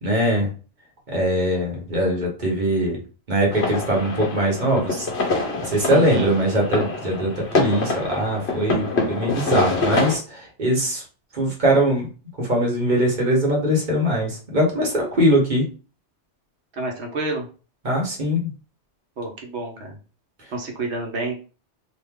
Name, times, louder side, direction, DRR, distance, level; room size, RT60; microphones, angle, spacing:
voice 1, 0.0-0.5 1.1-3.0 3.3-5.1 5.6-11.0 11.3-12.1 12.4-15.6 17.8-18.5, equal, 45° right, -1 dB, 1.1 m, -21 dB
sound 1, 3.5-10.1, left 3 dB, 65° left, 1.2 m, -25 dB
voice 2, 5.9-6.3 16.7-17.5 19.2-19.9 20.5-21.4, right 2 dB, 70° right, 2 dB, 1.2 m, -28 dB
3.0 x 2.5 x 3.5 m, 0.35 s
omnidirectional pair, 1.2 m